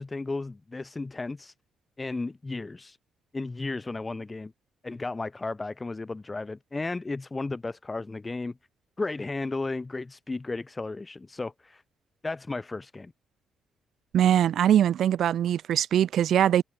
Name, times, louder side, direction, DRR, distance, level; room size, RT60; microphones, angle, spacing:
voice 1, 0.0-1.5 2.0-3.0 3.3-4.5 4.8-8.6 9.0-11.8 12.2-13.1, left 3 dB, 20° left, 4.2 m, -34 dB
voice 2, 14.1-16.6, right 10 dB, 70° right, 1.1 m, -22 dB
cardioid pair, 90°, 0 cm